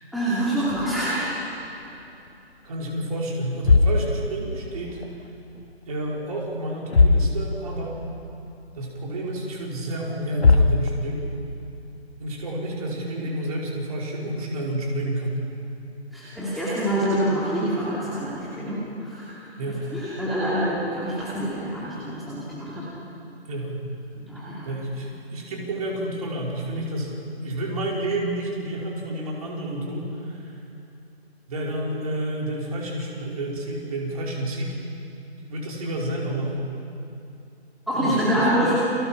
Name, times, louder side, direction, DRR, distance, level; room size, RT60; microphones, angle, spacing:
voice 1, 0.1-1.4 16.1-19.4 19.9-22.8 24.2-24.6 37.9-38.7, right 1 dB, ahead, -11 dB, 2.6 m, -26 dB
Giant Approaches in Forest, 0.7-2.3 2.6-3.0 3.4-5.3 5.5-6.2 6.5-6.6 6.9-7.9 8.2-8.3 8.9-9.0 10.0-10.1 10.4-11.4, left 3 dB, 70° left, 1.6 m, -22 dB
voice 2, 2.6-5.0 5.9-8.0 8.7-11.3 12.2-15.4 19.6-19.9 23.5-23.8 24.6-27.2 27.4-30.6 31.5-34.8 35.5-36.7 38.0-38.7, right 1 dB, 35° right, -2 dB, 4.9 m, -30 dB
30.0 x 25.0 x 5.8 m, 2.7 s
figure-of-eight pair, 150°, 33 cm